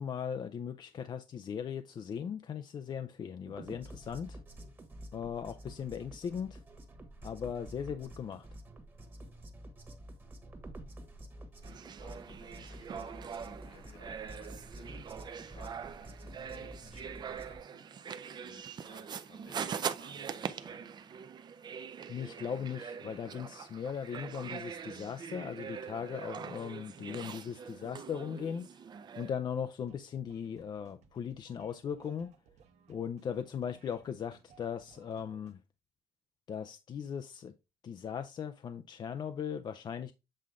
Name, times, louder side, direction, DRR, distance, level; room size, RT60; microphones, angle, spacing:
voice 1, 0.0-4.4 5.1-6.6 7.2-8.5 22.1-28.8 29.2-32.3 32.9-35.6 36.5-37.6 37.8-40.1, left 7 dB, 40° left, 0.4 m, -38 dB
sound 1, 3.5-17.6, right 1 dB, 20° right, 1.3 m, -49 dB
sound 2, 11.6-29.3, right 7 dB, 40° right, 0.6 m, -43 dB
voice 2, 12.0-15.1 15.4-20.9, left 5 dB, 65° left, 1.6 m, -59 dB
sound 3, 29.8-35.5, right 6 dB, 80° right, 1.1 m, -63 dB
7.6 x 3.7 x 3.5 m
cardioid pair, 120°, 11 cm